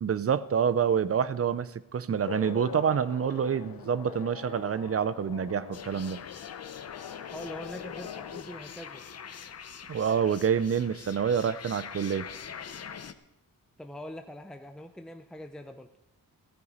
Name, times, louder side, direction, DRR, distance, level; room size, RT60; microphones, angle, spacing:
voice 1, 0.0-6.3 9.9-12.3, right 7 dB, 40° right, 16 dB, 0.5 m, -27 dB
sound 1, 2.2-8.4, left 9 dB, 85° left, 0.7 m, -42 dB
sound 2, 5.7-13.1, left 7 dB, 45° left, 0.7 m, -44 dB
voice 2, 7.3-9.0 13.8-15.9, equal, ahead, 6 dB, 0.6 m, -43 dB
15.5 x 14.5 x 4.1 m, 0.87 s
wide cardioid pair, 150°, 35 cm